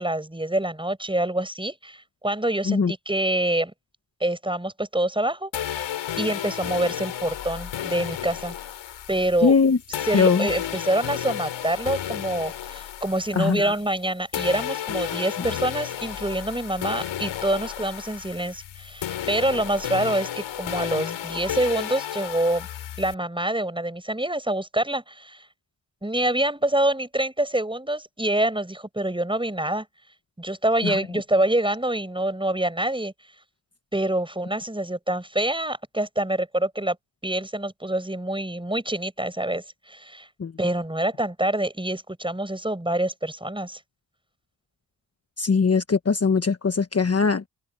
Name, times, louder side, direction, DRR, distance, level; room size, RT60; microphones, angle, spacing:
voice 1, 0.0-3.7 4.2-5.9 6.2-8.5 9.1-9.5 10.0-22.7 23.0-25.4 26.0-29.9 30.4-33.1 33.9-37.0 37.2-40.3 40.6-43.8, right 1 dB, 10° right, 7.2 m, -26 dB
sound 1, 5.5-14.0 14.3-23.1, left 11 dB, 85° left, 7.5 m, -33 dB
voice 2, 9.4-9.8 10.1-10.5 13.3-13.8 30.8-31.0 40.4-40.5 45.4-47.5, left 5 dB, 35° left, 1.3 m, -21 dB
open air
cardioid pair, 55°, 45 cm